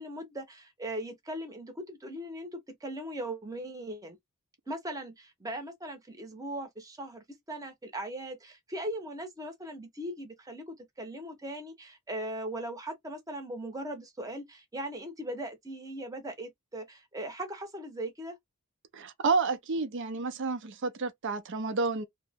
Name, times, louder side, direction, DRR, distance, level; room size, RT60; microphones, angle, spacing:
voice 1, 0.0-4.2 4.7-18.4, right 1 dB, 15° right, 0.8 m, -39 dB
voice 2, 18.9-22.1, right 4 dB, 55° right, 0.5 m, -30 dB
2.9 x 2.0 x 3.4 m
head